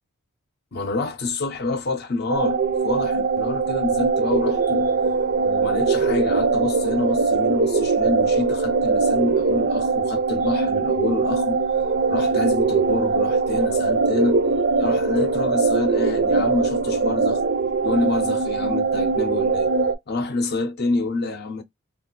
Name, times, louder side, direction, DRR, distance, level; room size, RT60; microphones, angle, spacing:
voice 1, 0.7-4.9 5.4-11.6 12.1-14.4 14.8-17.4 17.8-19.7 20.1-21.6, left 3 dB, 50° left, 0.6 m, -27 dB
sound 1, 2.3-19.9, right 4 dB, 50° right, 0.4 m, -21 dB
2.4 x 2.4 x 3.7 m
head